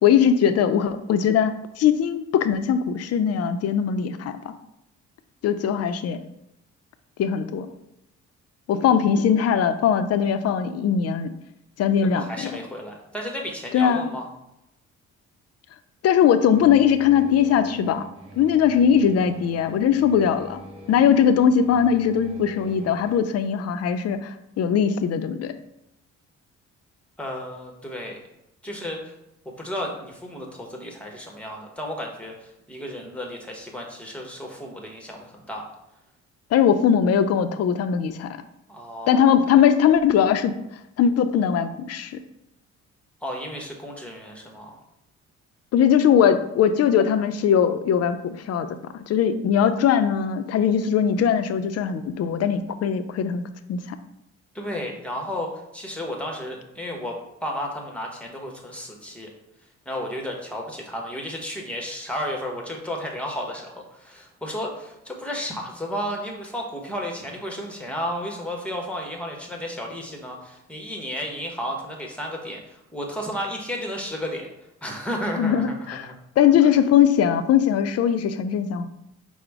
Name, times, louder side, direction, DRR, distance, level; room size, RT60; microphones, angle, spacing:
voice 1, 0.0-4.5 5.4-6.2 7.2-7.7 8.7-11.3 11.8-12.5 13.7-14.1 16.0-18.0 18.3-20.6 20.9-25.5 36.5-38.4 39.1-40.5 41.0-42.2 45.7-48.7 48.9-53.4 53.7-54.0 75.4-78.9, left 8 dB, 55° left, 10 dB, 0.4 m, -20 dB
voice 2, 12.1-14.3 27.2-28.2 28.6-29.1 29.4-35.6 38.7-39.3 43.2-44.8 54.5-59.3 59.9-74.5 74.8-76.1, equal, 5° left, 0 dB, 0.9 m, -33 dB
sound 1, 16.4-23.2, right 1 dB, 20° right, 1.1 m, -45 dB
4.9 x 2.1 x 4.6 m, 0.83 s
cardioid pair, 90°, 30 cm